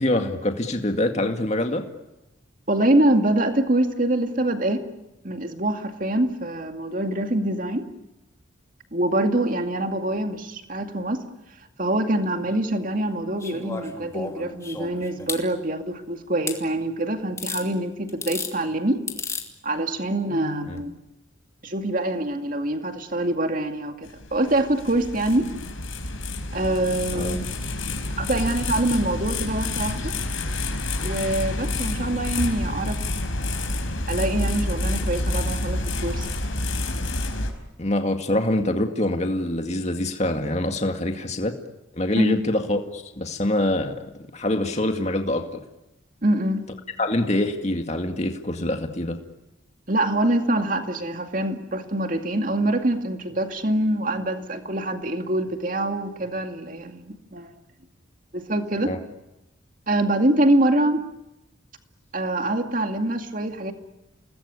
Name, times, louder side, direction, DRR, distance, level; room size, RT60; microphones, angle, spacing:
voice 1, 0.0-1.8 20.7-20.8 27.1-27.4 37.8-41.5 41.9-44.0 44.3-45.6 47.0-49.2 58.8-59.0, left 1 dB, 35° left, 5 dB, 2.2 m, -25 dB
voice 2, 2.7-4.8 5.2-7.9 8.9-11.2 11.8-19.1 19.6-20.9 21.6-25.5 26.5-27.4 28.2-30.1 31.0-33.0 34.1-36.3 42.2-42.3 46.2-46.7 49.9-57.5 58.3-58.9 59.9-61.0 62.1-63.7, right 1 dB, 40° right, 6 dB, 2.3 m, -24 dB
sound 1, 13.4-15.4 16.5-16.6 17.4-17.6 18.1-18.5 19.1-19.5 20.7-20.8, left 4 dB, 15° left, 2.7 m, -32 dB
sound 2, 24.0-37.5, left 2 dB, 85° left, 5.1 m, -28 dB
29.5 x 20.5 x 9.9 m, 0.95 s
head